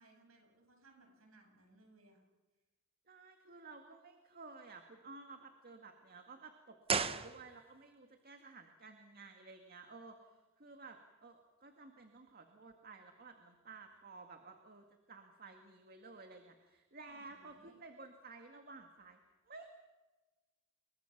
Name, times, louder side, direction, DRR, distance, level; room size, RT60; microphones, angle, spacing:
voice 1, 0.0-2.2 17.0-17.8, right 2 dB, 85° right, 2 dB, 7.6 m, -65 dB
voice 2, 3.1-19.2 19.5-19.7, right 3 dB, 45° right, 5 dB, 2.0 m, -54 dB
sound 1, 6.8-7.9 8.2-8.3, right 5 dB, 30° right, 1.0 m, -36 dB
29.5 x 23.0 x 6.0 m, 1.2 s
head